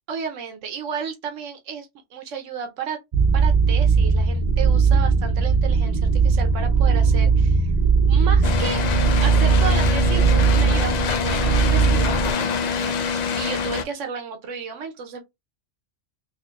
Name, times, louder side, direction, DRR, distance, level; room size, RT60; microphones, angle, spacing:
voice 1, 0.1-3.0 3.3-7.7 8.1-8.8 9.2-15.2, right 6 dB, 80° right, 1.1 m, -33 dB
sound 1, 3.1-12.3, right 5 dB, 45° right, 0.6 m, -19 dB
sound 2, 8.4-13.8, left 6 dB, 70° left, 0.4 m, -25 dB
4.3 x 2.8 x 2.3 m
omnidirectional pair, 1.3 m